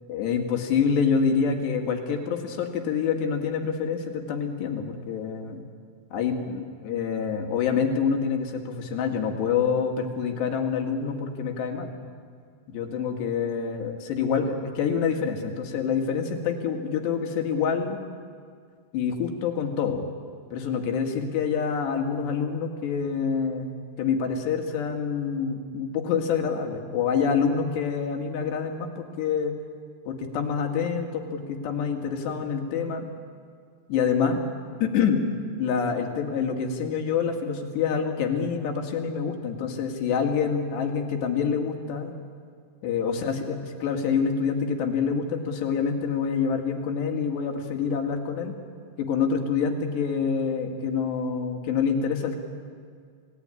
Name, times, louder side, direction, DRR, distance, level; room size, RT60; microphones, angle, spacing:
voice 1, 0.1-5.6 6.1-11.9 12.7-18.0 18.9-20.0 20.5-23.7 24.0-29.6 30.1-33.1 33.9-34.4 34.8-35.2 35.6-42.1 42.8-48.5 49.0-52.4, left 6 dB, 85° left, 3 dB, 4.2 m, -26 dB
27.0 x 18.5 x 9.8 m, 2.1 s
omnidirectional pair, 4.8 m